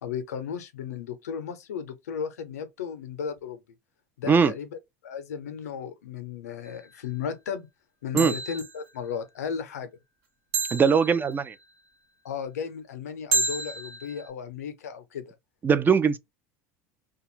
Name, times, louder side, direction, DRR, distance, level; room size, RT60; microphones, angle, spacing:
voice 1, 0.0-3.6 4.2-4.7 5.0-7.7 8.0-9.9 12.2-15.3, left 7 dB, 85° left, 0.6 m, -35 dB
sound 1, 6.6-7.0 8.2-8.9 10.5-11.6 13.3-14.3, right 4 dB, 70° right, 1.1 m, -30 dB
voice 2, 10.7-11.5 15.6-16.2, right 6 dB, 25° right, 0.4 m, -21 dB
2.5 x 2.3 x 3.0 m
hypercardioid pair, 85°, 8 cm